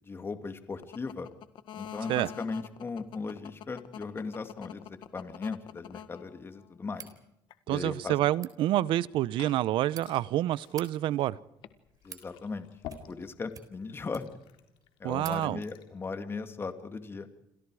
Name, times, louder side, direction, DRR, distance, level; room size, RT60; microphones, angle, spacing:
voice 1, 0.0-1.3 1.7-7.1 7.7-8.1 12.0-12.7 13.1-14.3 15.0-17.3, left 4 dB, 25° left, 2.4 m, -38 dB
sound 1, 0.8-6.7 7.5-8.1 11.6-11.7, left 10 dB, 70° left, 1.8 m, -45 dB
sound 2, 6.9-7.2 8.2-8.5 9.5-10.0 10.6-10.9 11.7-12.3 12.8-13.2 13.5-14.5 14.8-14.9 15.2-15.4, right 7 dB, 45° right, 4.0 m, -47 dB
voice 2, 7.7-11.4 15.0-15.6, right 14 dB, 75° right, 0.8 m, -28 dB
Liquid, 8.9-16.0, left 10 dB, 85° left, 3.7 m, -52 dB
29.5 x 27.0 x 4.9 m
cardioid pair, 115°, 9 cm